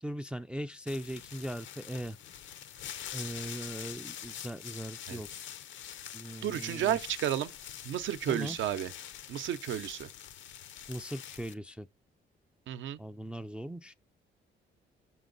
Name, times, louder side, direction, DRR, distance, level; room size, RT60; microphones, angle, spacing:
voice 1, 0.0-2.2 3.1-5.3 6.1-7.0 8.3-8.6 10.9-11.9 13.0-14.0, right 1 dB, 5° right, 0.3 m, -39 dB
sound 1, 0.9-11.5, left 10 dB, 75° left, 0.7 m, -45 dB
voice 2, 6.4-7.5 7.8-8.9 9.3-10.1 12.7-13.0, right 11 dB, 75° right, 0.6 m, -32 dB
6.9 x 6.2 x 3.9 m
cardioid pair, 90°, 20 cm